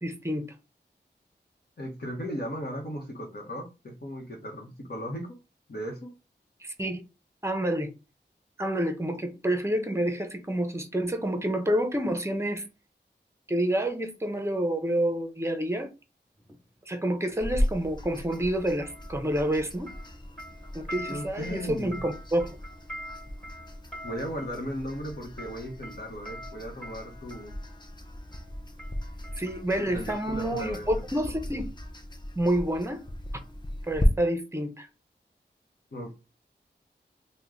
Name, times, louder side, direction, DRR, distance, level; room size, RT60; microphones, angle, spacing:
voice 1, 0.0-0.4 6.6-7.0 7.4-7.9 8.6-12.6 13.5-15.9 16.9-19.9 20.7-22.6 29.4-31.7 32.4-33.0 33.9-34.9, right 1 dB, 15° right, 0.7 m, -28 dB
voice 2, 1.8-5.3 5.7-6.1 21.1-22.0 24.0-27.6 29.8-30.9 35.9-36.2, equal, 60° left, 1.0 m, -36 dB
sound 1, 16.4-16.6 18.3-19.6 19.9-27.6 28.3-28.5 28.8-30.7 31.0-31.1, equal, 5° left, 1.3 m, -45 dB
sound 2, 17.4-34.1, left 1 dB, 25° left, 0.6 m, -37 dB
3.0 x 2.2 x 3.7 m
wide cardioid pair, 80°, 18 cm